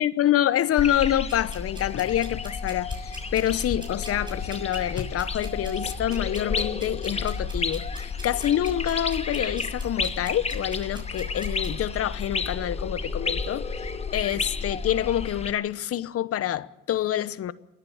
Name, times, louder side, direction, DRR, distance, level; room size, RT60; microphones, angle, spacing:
voice 1, 0.0-17.5, left 11 dB, 40° left, 1.0 m, -27 dB
sound 1, 0.8-15.5, left 4 dB, 15° left, 1.3 m, -31 dB
sound 2, 1.3-11.7, right 1 dB, 10° right, 6.8 m, -46 dB
28.0 x 10.5 x 8.7 m
supercardioid pair, 105°, 36 cm